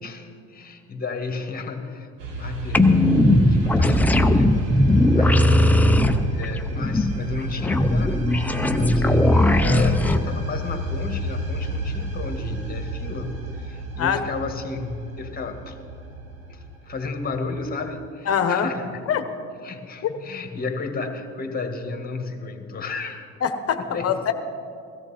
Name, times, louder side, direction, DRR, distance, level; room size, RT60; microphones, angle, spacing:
voice 1, 0.0-4.7 4.9-5.9 6.3-15.8 16.5-19.1 19.6-23.3 23.7-24.2, left 4 dB, 25° left, 6 dB, 1.7 m, -33 dB
sound 1, 2.2-17.9, right 1 dB, 85° right, 1.8 m, -32 dB
sound 2, 2.7-10.2, left 1 dB, 5° left, 0.6 m, -18 dB
voice 2, 18.3-18.7 19.1-19.2 20.0-20.1 23.4-24.3, left 8 dB, 45° left, 9 dB, 1.1 m, -23 dB
17.0 x 13.5 x 4.3 m, 2.4 s
supercardioid pair, 95°, 33 cm